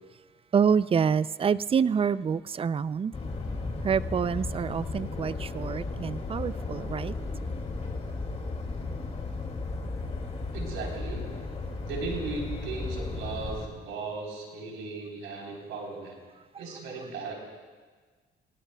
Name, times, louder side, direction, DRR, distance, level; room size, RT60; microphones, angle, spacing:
voice 1, 0.5-3.1 3.8-7.1, right 6 dB, 30° right, 17 dB, 0.4 m, -27 dB
sound 1, 3.1-13.7, left 3 dB, 30° left, 2.3 m, -35 dB
voice 2, 10.5-11.3 11.8-16.2 16.6-17.3, right 4 dB, 90° right, -1 dB, 3.8 m, -36 dB
29.0 x 18.0 x 2.3 m, 1.5 s
cardioid pair, 90°, 20 cm